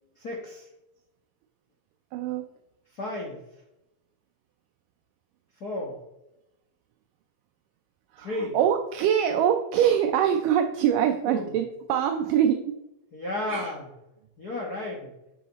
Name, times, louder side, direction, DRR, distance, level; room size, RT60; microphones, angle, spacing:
voice 1, 0.2-0.7 2.9-3.4 5.6-6.0 8.2-8.6 11.3-11.5 13.1-13.9 14.4-15.1, left 2 dB, 75° left, -2 dB, 0.8 m, -33 dB
voice 2, 2.1-2.5 8.1-12.8 13.5-13.7, right 9 dB, 80° right, 5 dB, 2.1 m, -24 dB
11.5 x 5.8 x 4.1 m, 0.91 s
omnidirectional pair, 4.0 m